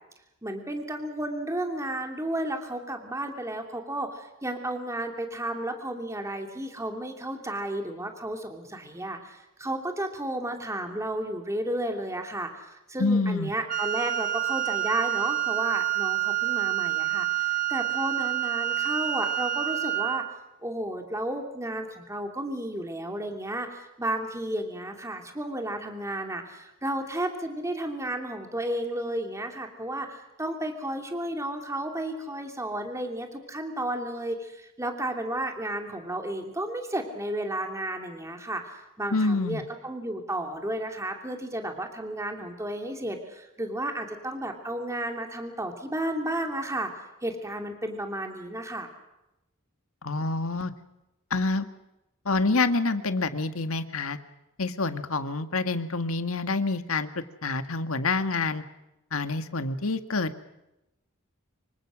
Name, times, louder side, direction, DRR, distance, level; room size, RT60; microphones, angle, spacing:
voice 1, 0.4-20.2 20.6-46.9 47.2-48.9, right 1 dB, 15° right, 4 dB, 2.8 m, -33 dB
voice 2, 13.0-13.5 39.1-39.6 50.0-50.7 51.3-51.7 52.3-54.2 54.6-57.1 57.4-58.6 59.1-60.4, left 3 dB, 75° left, 9 dB, 1.8 m, -27 dB
Wind instrument woodwind instrument, 13.7-20.3, right 14 dB, 40° right, 1.3 m, -28 dB
26.5 x 24.5 x 6.3 m, 0.92 s
head